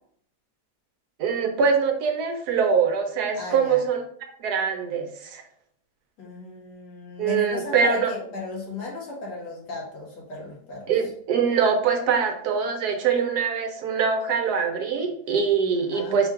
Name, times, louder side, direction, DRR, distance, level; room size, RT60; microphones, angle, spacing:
voice 1, 1.2-4.0 4.4-5.4 7.2-8.1 10.9-16.3, right 6 dB, 70° right, 4 dB, 1.1 m, -23 dB
voice 2, 3.3-3.8 6.2-10.9 15.9-16.2, left 3 dB, 75° left, -4 dB, 1.9 m, -35 dB
4.3 x 2.4 x 4.5 m, 0.63 s
omnidirectional pair, 1.9 m